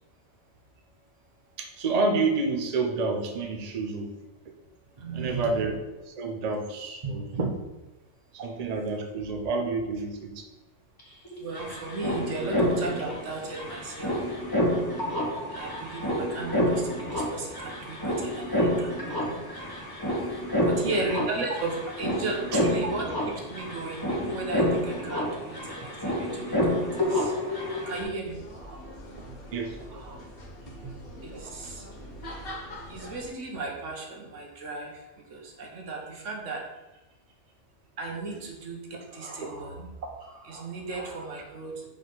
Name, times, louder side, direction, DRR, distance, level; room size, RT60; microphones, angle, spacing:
voice 1, 1.6-4.1 5.1-5.8 6.1-7.5 8.4-10.4 20.6-20.9 29.1-29.2 29.5-29.8 30.8-30.9 39.4-39.5, right 3 dB, 40° right, 3 dB, 0.7 m, -29 dB
voice 2, 5.0-5.4 11.4-14.3 15.5-19.4 20.6-27.3 27.9-28.9 29.9-30.2 31.2-31.8 32.9-36.7 38.0-39.9 40.2-41.9, right 3 dB, 80° right, 1 dB, 1.4 m, -36 dB
sound 1, 11.0-11.1 11.2-28.0, equal, 20° left, 1.2 m, -29 dB
sound 2, 28.2-33.3, equal, 50° left, 1.4 m, -43 dB
5.5 x 5.2 x 3.9 m, 1.0 s
omnidirectional pair, 1.3 m